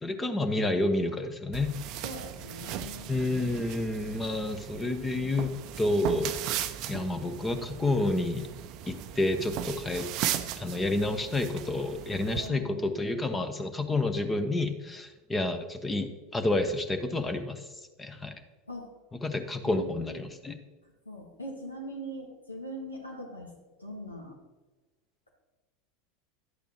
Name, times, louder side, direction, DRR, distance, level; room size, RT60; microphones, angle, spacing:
voice 1, 0.0-1.7 3.1-6.3 6.9-8.5 8.9-10.1 10.6-17.7 18.0-18.3 19.1-20.6, left 2 dB, 15° left, 8 dB, 0.9 m, -29 dB
Dressing-and-undressing-socks, 1.5-12.5, right 11 dB, 50° right, 0.5 m, -37 dB
voice 2, 2.0-3.1 12.3-13.2 18.7-18.9 19.7-20.2 21.1-23.5 23.8-24.4, equal, 90° left, 0 dB, 2.0 m, -41 dB
11.0 x 8.3 x 3.1 m, 1.2 s
figure-of-eight pair, 80°, 0 cm